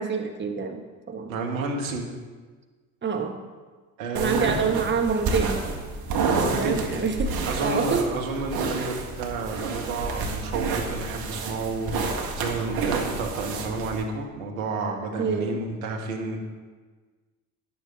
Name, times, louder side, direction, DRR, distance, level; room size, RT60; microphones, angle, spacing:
voice 1, 0.0-1.3 3.0-3.4 4.1-5.6 6.3-8.1 15.2-15.6, right 5 dB, 25° right, 5 dB, 1.4 m, -27 dB
voice 2, 1.3-2.1 4.0-4.6 6.4-6.8 7.5-16.4, right 3 dB, 75° right, 2 dB, 2.0 m, -30 dB
sound 1, 4.2-14.0, right 4 dB, 55° right, 2.1 m, -30 dB
12.0 x 11.5 x 4.0 m, 1.4 s
hypercardioid pair, 55°, 42 cm